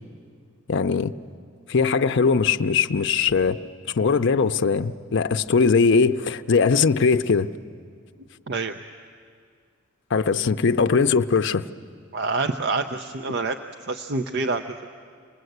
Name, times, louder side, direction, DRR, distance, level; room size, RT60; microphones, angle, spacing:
voice 1, 0.7-1.1 1.7-3.6 3.9-7.5 10.1-11.7, left 5 dB, 60° left, 0.5 m, -20 dB
voice 2, 12.1-13.6 13.9-14.9, right 3 dB, 60° right, 0.6 m, -27 dB
27.5 x 19.5 x 8.0 m
head